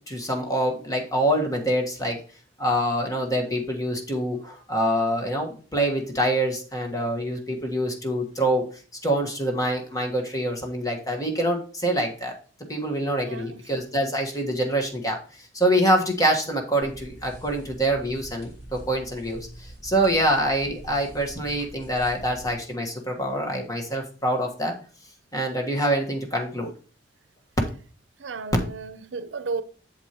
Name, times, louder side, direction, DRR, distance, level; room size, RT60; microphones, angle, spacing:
voice 1, 0.1-2.2 2.6-8.6 9.0-12.3 12.7-24.7 25.3-26.7, right 1 dB, 20° left, 1.4 m, -25 dB
voice 2, 13.2-13.6 28.2-29.6, right 4 dB, 85° right, 0.6 m, -33 dB
sound 1, 16.8-22.5, right 1 dB, 85° left, 4.2 m, -44 dB
8.0 x 7.2 x 3.0 m
head